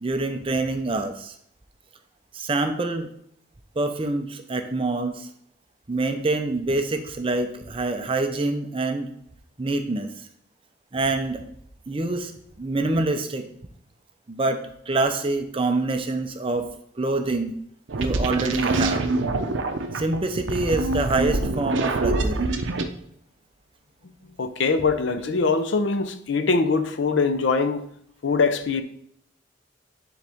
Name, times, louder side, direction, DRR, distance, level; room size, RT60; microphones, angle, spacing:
voice 1, 0.0-1.3 2.3-3.1 3.8-5.3 5.9-9.1 9.6-10.1 10.9-11.4 11.9-12.3 12.6-13.4 14.3-16.7 17.0-17.5 18.0-19.0 19.9-22.5, right 2 dB, 25° right, 0.5 m, -26 dB
sound 1, 17.9-22.9, right 2 dB, 70° right, 0.6 m, -25 dB
voice 2, 24.4-27.9 28.2-28.8, left 4 dB, 65° left, 0.6 m, -22 dB
10.0 x 3.9 x 3.5 m
head